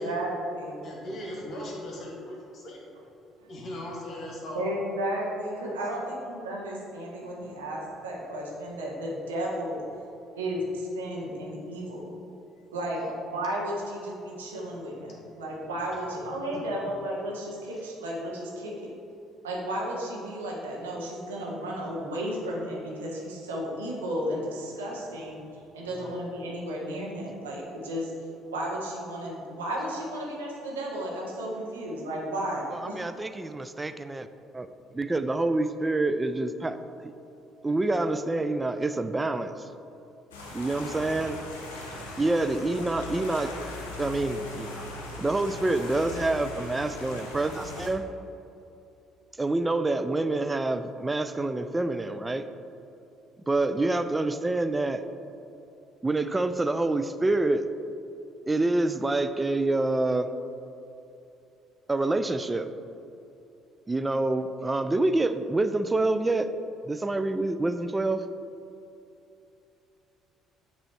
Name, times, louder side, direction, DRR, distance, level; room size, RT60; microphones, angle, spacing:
voice 1, 0.0-0.8 3.4-3.5 4.5-9.8 10.3-12.1 12.7-18.9 19.4-25.4 25.7-28.1 28.5-33.0, right 1 dB, 75° right, -4 dB, 1.1 m, -33 dB
voice 2, 0.8-2.8 3.5-4.6 5.9-6.1 7.2-7.3 12.9-13.1 16.5-16.9 17.7-18.0 25.4-25.5 25.8-26.1, left 1 dB, 45° left, -2 dB, 1.3 m, -39 dB
voice 3, 32.7-34.3 34.5-34.7 34.9-36.8 37.6-39.5 40.5-41.4 42.2-43.5 44.0-44.9 45.2-48.1 49.4-52.5 53.5-55.0 56.0-57.6 58.5-60.3 61.9-62.7 63.9-66.5 66.8-68.2, right 2 dB, 20° right, 11 dB, 0.3 m, -27 dB
sound 1, 40.3-47.9, left 2 dB, 75° left, 0.8 m, -39 dB
8.7 x 3.1 x 4.5 m, 2.8 s
figure-of-eight pair, 50°, 0 cm